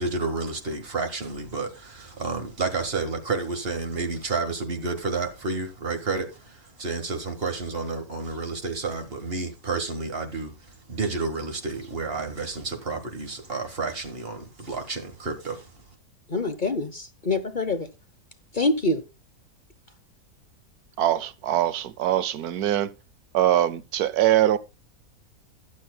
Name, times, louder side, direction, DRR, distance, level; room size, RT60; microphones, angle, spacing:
voice 1, 0.0-15.8, right 3 dB, 40° right, 1.9 m, -30 dB
voice 2, 16.3-17.9 18.5-19.0, left 2 dB, 35° left, 1.0 m, -25 dB
voice 3, 21.0-22.9 23.3-24.6, right 12 dB, 90° right, 1.2 m, -22 dB
21.0 x 7.4 x 2.3 m
omnidirectional pair, 1.6 m